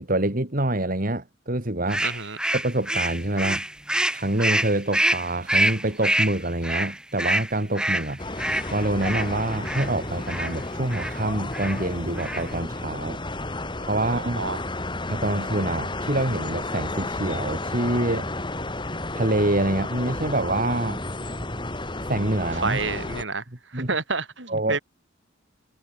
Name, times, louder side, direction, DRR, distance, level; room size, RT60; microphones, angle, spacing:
voice 1, 0.0-2.0 2.5-3.6 4.1-8.2 8.7-13.2 13.8-14.4 15.1-18.3 19.1-21.0 22.1-22.8 23.7-23.9 24.5-24.8, right 1 dB, 45° right, 2.4 m, -26 dB
sound 1, 1.9-9.9 10.3-10.6 10.9-11.2 11.5-11.8 12.1-12.6, right 1 dB, 5° right, 5.3 m, -26 dB
voice 2, 2.0-2.4 14.0-14.6 22.6-23.4 23.7-24.8, right 4 dB, 70° right, 6.1 m, -29 dB
sound 2, 8.2-23.2, left 2 dB, 25° left, 3.0 m, -32 dB
head